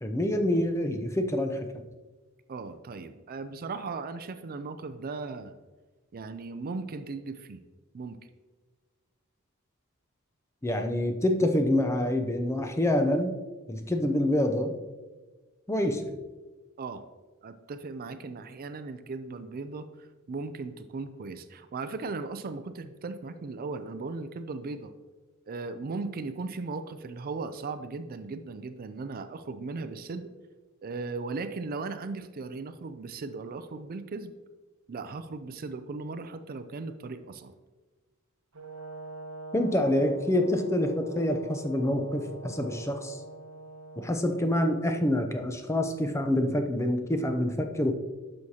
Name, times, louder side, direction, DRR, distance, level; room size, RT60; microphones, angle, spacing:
voice 1, 0.0-1.7 10.6-13.4 13.7-14.8 15.7-16.2 39.5-43.2 44.0-47.9, left 1 dB, 15° left, 6 dB, 0.6 m, -26 dB
voice 2, 2.5-5.5 6.1-7.6 7.9-8.3 10.7-10.9 16.8-17.0 17.4-24.9 25.5-30.3 30.8-34.4 34.9-37.5, right 3 dB, 45° right, 10 dB, 0.4 m, -37 dB
Brass instrument, 38.5-44.7, right 2 dB, 80° right, 0.9 m, -44 dB
10.5 x 6.4 x 2.8 m, 1.3 s
head